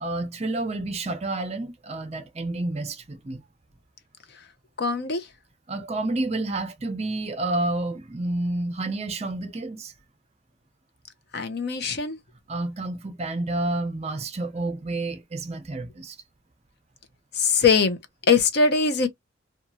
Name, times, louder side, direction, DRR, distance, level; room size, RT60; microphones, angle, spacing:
voice 1, 0.0-3.4 5.7-9.9 12.5-16.1, right 2 dB, 35° right, 0.6 m, -29 dB
voice 2, 4.8-5.3 11.3-12.2 17.3-18.0 18.3-19.1, left 5 dB, 55° left, 0.6 m, -21 dB
2.9 x 2.3 x 2.6 m
head